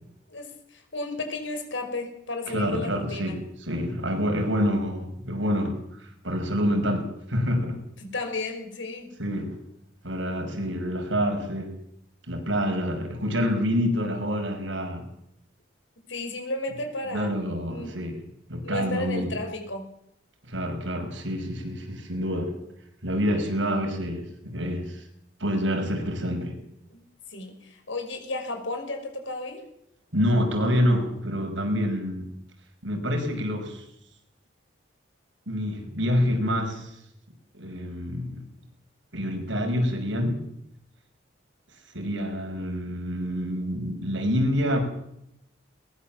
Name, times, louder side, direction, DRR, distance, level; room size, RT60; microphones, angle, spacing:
voice 1, 0.3-3.4 8.1-9.1 16.1-17.3 17.7-17.9 18.6-19.9 26.9-27.0 27.3-29.6, left 2 dB, 80° left, 5 dB, 5.7 m, -33 dB
voice 2, 2.5-7.8 9.2-9.6 10.0-11.8 12.3-15.1 17.1-18.2 18.5-19.3 20.4-22.6 23.0-25.0 25.4-26.6 30.1-32.3 32.8-33.8 35.5-37.0 37.5-38.4 39.1-40.4 41.9-44.8, equal, 80° right, 4 dB, 5.7 m, -27 dB
22.0 x 20.0 x 7.5 m, 0.78 s
head